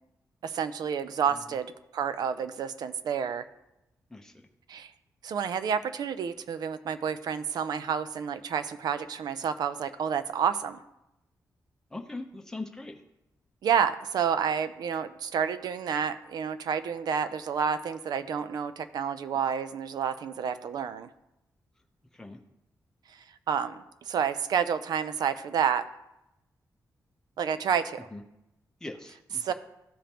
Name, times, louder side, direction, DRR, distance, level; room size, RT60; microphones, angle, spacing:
voice 1, 0.4-3.5 4.7-4.9 5.2-10.8 13.6-21.1 23.1-25.8 27.4-28.1 29.4-29.5, right 7 dB, 75° right, 11 dB, 0.5 m, -29 dB
voice 2, 11.9-12.9 22.1-22.4 28.1-28.2 28.8-29.5, left 2 dB, 10° left, 3 dB, 0.7 m, -40 dB
14.0 x 5.1 x 2.9 m, 0.89 s
wide cardioid pair, 165°, 7 cm